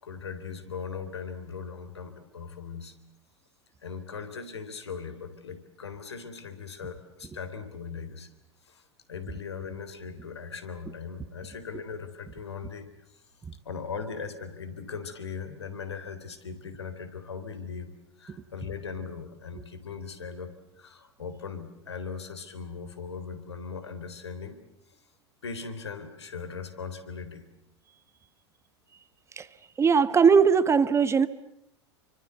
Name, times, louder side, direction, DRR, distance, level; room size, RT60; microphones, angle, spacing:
voice 1, 0.0-2.9 3.8-8.3 8.6-13.2 13.7-24.6 25.4-27.5, left 5 dB, 75° left, 3.5 m, -39 dB
voice 2, 29.8-31.3, right 6 dB, 20° right, 1.4 m, -20 dB
29.5 x 25.0 x 8.1 m
figure-of-eight pair, 85°, 14 cm